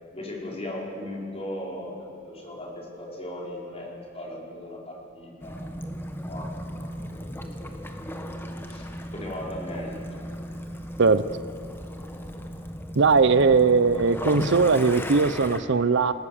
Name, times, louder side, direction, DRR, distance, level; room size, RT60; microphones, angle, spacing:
voice 1, 0.1-5.7 6.2-7.3 7.5-8.3 8.7-10.4, left 1 dB, 30° left, -3 dB, 5.0 m, -38 dB
Waves surf / Splash splatter / Trickle dribble, 5.4-15.6, equal, 10° left, 1.4 m, -36 dB
voice 2, 13.0-16.1, right 4 dB, 65° right, 13 dB, 0.7 m, -19 dB
30.0 x 17.5 x 7.1 m, 2.5 s
head